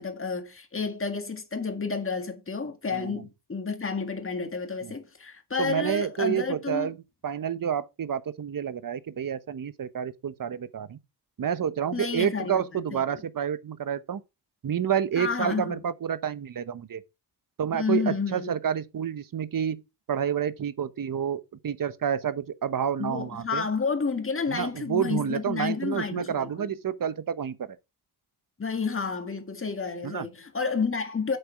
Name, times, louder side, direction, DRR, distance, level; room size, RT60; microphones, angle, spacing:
voice 1, 0.0-6.9 11.9-13.2 15.2-15.8 17.7-18.5 23.0-26.7 28.6-31.4, left 5 dB, 30° left, 1.8 m, -30 dB
voice 2, 5.6-7.0 7.2-11.0 11.4-14.2 14.6-17.0 17.6-19.8 20.1-23.7 24.5-27.7 30.0-30.3, right 8 dB, 55° right, 0.9 m, -29 dB
8.2 x 6.8 x 4.6 m
wide cardioid pair, 105°, 40 cm